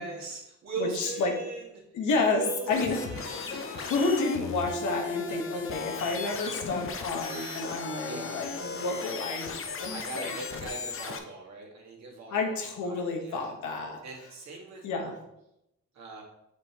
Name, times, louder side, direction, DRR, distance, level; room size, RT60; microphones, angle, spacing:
voice 1, 0.0-1.8 2.3-3.9 5.3-5.6 8.0-8.5 9.5-13.5 14.0-15.2 15.9-16.2, right 4 dB, 65° right, -2 dB, 2.0 m, -40 dB
voice 2, 0.8-1.3 1.9-3.0 3.8-10.3 12.3-14.0 14.8-15.1, left 3 dB, 75° left, 2 dB, 1.3 m, -30 dB
sound 1, 2.7-11.2, left 4 dB, 45° left, 0.8 m, -37 dB
6.4 x 5.0 x 2.9 m, 0.84 s
cardioid pair, 90°, 30 cm